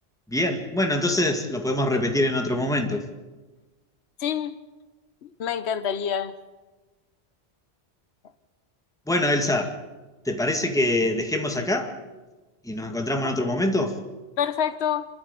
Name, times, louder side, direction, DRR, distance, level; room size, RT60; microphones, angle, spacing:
voice 1, 0.3-3.0 9.1-9.8 10.3-11.9 12.6-14.0, left 1 dB, 5° left, 4 dB, 1.9 m, -24 dB
voice 2, 4.2-4.6 5.2-6.3 9.1-9.3 13.2-13.3 14.4-15.1, left 8 dB, 80° left, 11 dB, 1.1 m, -27 dB
27.0 x 13.0 x 8.2 m, 1.2 s
omnidirectional pair, 1.1 m